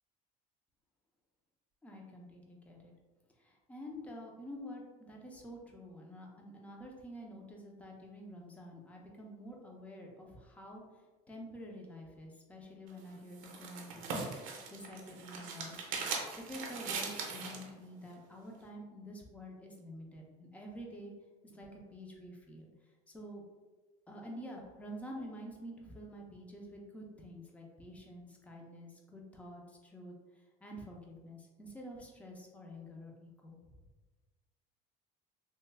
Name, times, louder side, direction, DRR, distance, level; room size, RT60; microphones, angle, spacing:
voice 1, 1.8-2.9 3.4-10.8 11.3-21.1 21.4-22.7 23.1-23.4 24.1-33.7, equal, 10° left, 0 dB, 0.5 m, -48 dB
sound 1, 12.9-17.7, right 4 dB, 55° right, 0.6 m, -40 dB
3.1 x 2.2 x 3.2 m, 1.2 s
cardioid pair, 150°, 16 cm